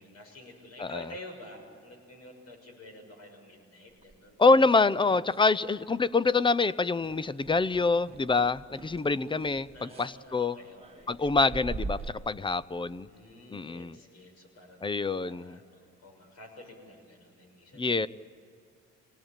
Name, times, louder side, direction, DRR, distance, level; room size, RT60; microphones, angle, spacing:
voice 1, 0.0-4.4 9.7-11.3 13.1-18.1, left 1 dB, 55° left, 3 dB, 6.4 m, -49 dB
sound 1, 4.0-5.5 5.7-6.1 6.4-6.6 7.0-12.1, right 3 dB, 20° right, 1.3 m, -43 dB
voice 2, 4.4-10.5 11.1-13.1 13.5-14.0 14.8-15.6 17.7-18.1, left 3 dB, 15° left, 19 dB, 0.6 m, -26 dB
25.0 x 18.5 x 9.0 m, 2.2 s
cardioid pair, 90°, 30 cm